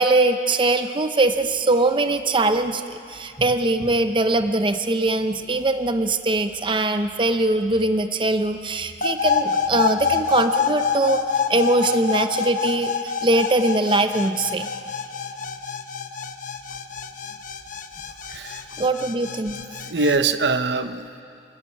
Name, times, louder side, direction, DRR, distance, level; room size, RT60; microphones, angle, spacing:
voice 1, 0.0-11.2 11.5-14.7 18.8-19.6, right 2 dB, 30° right, 8 dB, 0.7 m, -21 dB
sound 1, 9.0-20.2, left 5 dB, 45° left, 1.0 m, -26 dB
voice 2, 18.3-18.7 19.7-21.2, right 3 dB, 80° right, 10 dB, 0.9 m, -23 dB
28.5 x 13.5 x 8.7 m, 2.4 s
head